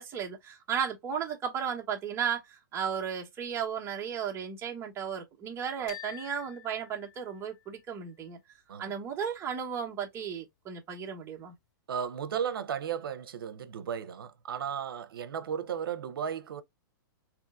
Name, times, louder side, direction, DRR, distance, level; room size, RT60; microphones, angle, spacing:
voice 1, 0.0-8.4 8.8-11.6, right 7 dB, 20° right, 1.1 m, -35 dB
sound 1, 5.9-7.8, left 13 dB, 30° left, 0.4 m, -48 dB
voice 2, 11.9-16.6, right 8 dB, 85° right, 0.6 m, -35 dB
3.6 x 2.8 x 2.5 m
hypercardioid pair, 140°, 12 cm